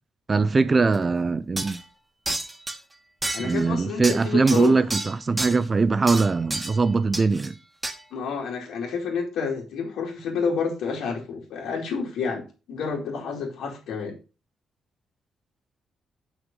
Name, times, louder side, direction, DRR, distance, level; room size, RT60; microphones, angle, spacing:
voice 1, 0.3-1.8 3.4-7.5, right 4 dB, 30° right, 0.6 m, -21 dB
sound 1, 0.9-1.0 1.6-1.8 2.3-2.8 3.2-3.7 4.0-5.6 6.1-6.8 7.1-7.5 7.8-8.0, right 2 dB, 15° right, 1.4 m, -30 dB
voice 2, 3.3-4.8 8.1-14.1, left 5 dB, 90° left, 2.7 m, -29 dB
8.1 x 6.0 x 5.3 m
cardioid pair, 115°, 0 cm